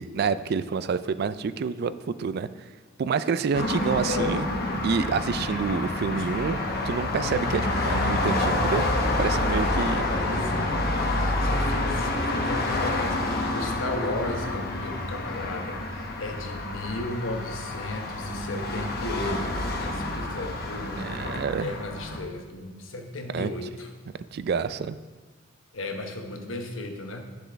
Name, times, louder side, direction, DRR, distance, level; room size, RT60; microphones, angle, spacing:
voice 1, 0.0-2.5 3.0-4.5 4.8-6.6 6.8-8.9 9.2-10.0 21.0-21.7 23.3-23.5 24.3-25.0, right 5 dB, 55° right, 13 dB, 0.3 m, -28 dB
sound 1, 3.5-22.2, left 2 dB, 50° left, 0.9 m, -28 dB
voice 2, 4.0-4.8 6.1-6.2 10.1-21.1 21.5-23.9 25.7-27.2, left 2 dB, 85° left, 4 dB, 1.0 m, -35 dB
9.4 x 7.0 x 3.5 m, 1.4 s
head